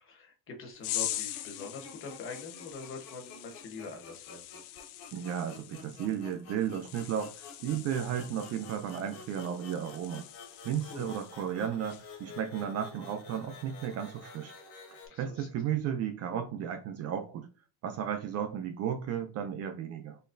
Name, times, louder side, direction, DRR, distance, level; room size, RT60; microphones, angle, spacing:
voice 1, 0.0-4.6 10.8-11.1 15.1-15.5, left 3 dB, 30° left, 1.0 m, -44 dB
sound 1, 0.7-15.1, left 4 dB, 55° left, 1.7 m, -51 dB
sound 2, 0.8-11.5 11.9-12.2, left 14 dB, 75° left, 0.5 m, -43 dB
voice 2, 5.1-10.3 10.6-14.5 15.2-17.5 17.8-20.2, right 9 dB, 40° right, 0.4 m, -34 dB
4.0 x 2.9 x 2.5 m
cardioid pair, 165°, 40 cm